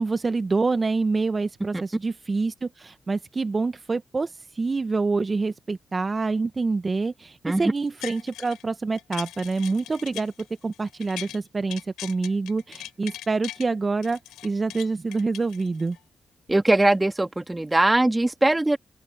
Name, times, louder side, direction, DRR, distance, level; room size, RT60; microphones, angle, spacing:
voice 1, 0.0-16.0, right 3 dB, 40° right, 1.0 m, -26 dB
sound 1, 7.8-8.6 9.0-11.4 11.7-13.7 14.0-16.0 16.5-16.6, left 14 dB, 85° left, 6.7 m, -40 dB
voice 2, 16.5-18.8, right 2 dB, 20° right, 2.0 m, -21 dB
open air
supercardioid pair, 45°, 0 cm